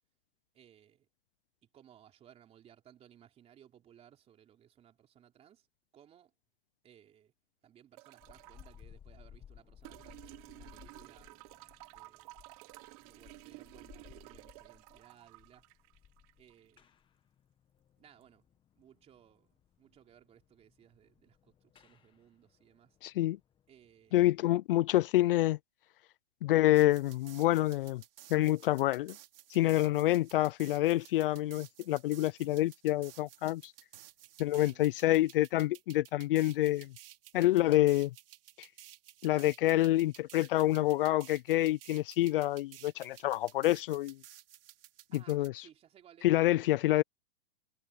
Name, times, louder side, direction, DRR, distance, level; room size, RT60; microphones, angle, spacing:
voice 1, 0.5-1.1 1.6-5.7 5.9-6.3 6.8-7.3 7.6-11.3 11.9-12.5 13.0-15.7 16.4-16.8 18.0-18.5 18.8-19.5 19.8-23.0 23.7-24.4 34.6-35.0 45.1-47.0, right 10 dB, 20° right, 3.8 m, -61 dB
sound 1, 8.0-8.8 9.8-16.8 18.2-18.3, right 23 dB, 40° right, 1.0 m, -53 dB
sound 2, 8.2-24.6, left 9 dB, 15° left, 1.5 m, -60 dB
voice 2, 23.0-23.4 24.1-25.6 26.4-28.0 28.3-29.1 29.5-33.7 34.4-36.9 37.3-38.1 38.6-38.7 39.2-44.2 45.3-45.5 46.2-47.0, left 15 dB, 65° left, 0.4 m, -27 dB
sound 3, 26.7-45.5, right 13 dB, 70° right, 2.7 m, -55 dB
hypercardioid pair, 150°, 29 cm